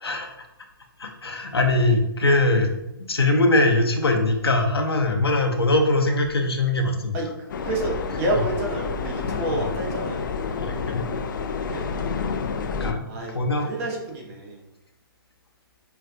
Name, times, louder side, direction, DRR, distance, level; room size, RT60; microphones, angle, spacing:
voice 1, 0.0-0.3 1.0-2.8 3.1-7.2 10.6-11.1 12.7-13.0 13.3-13.7, left 2 dB, 80° left, 3 dB, 0.7 m, -22 dB
sound 1, 7.5-12.9, left 5 dB, 55° left, 0.4 m, -29 dB
voice 2, 7.6-10.2 11.7-11.9 13.1-14.6, right 2 dB, 35° right, -1 dB, 1.1 m, -29 dB
5.5 x 2.4 x 2.5 m, 0.90 s
figure-of-eight pair, 130°, 13 cm